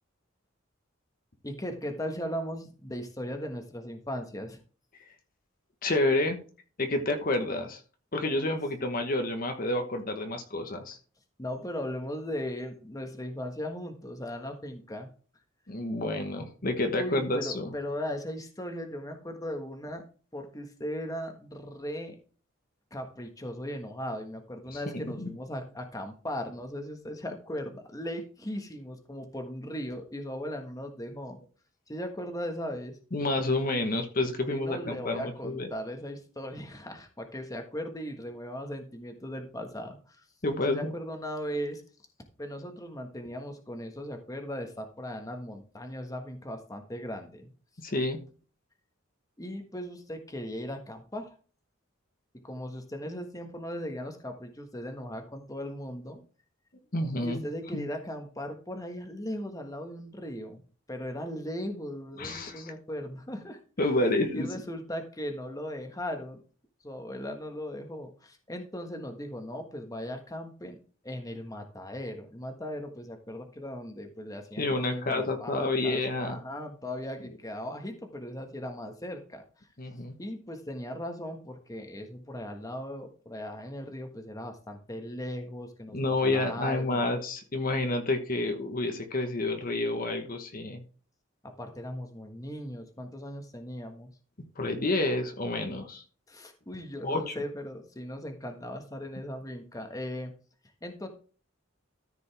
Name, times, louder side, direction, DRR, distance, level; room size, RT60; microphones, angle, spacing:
voice 1, 1.4-4.6 11.4-15.1 17.0-20.0 20.3-22.2 22.9-31.4 31.9-33.0 34.4-40.3 40.7-41.8 42.4-47.5 49.4-51.3 52.4-56.2 57.2-60.6 60.9-63.6 64.3-66.4 66.8-70.8 71.0-79.7 80.2-87.1 91.4-94.1 96.3-100.3 100.8-101.1, equal, 15° left, 5 dB, 1.4 m, -38 dB
voice 2, 5.8-6.4 6.8-7.8 8.1-11.0 15.7-17.8 24.7-25.3 33.1-35.7 40.4-40.9 47.8-48.2 56.9-57.5 57.7-57.9 62.2-62.7 63.8-64.5 74.6-76.4 79.8-80.2 85.9-90.8 94.6-96.0 97.0-97.4, left 2 dB, 45° left, 5 dB, 1.2 m, -29 dB
13.5 x 5.2 x 3.4 m, 0.38 s
head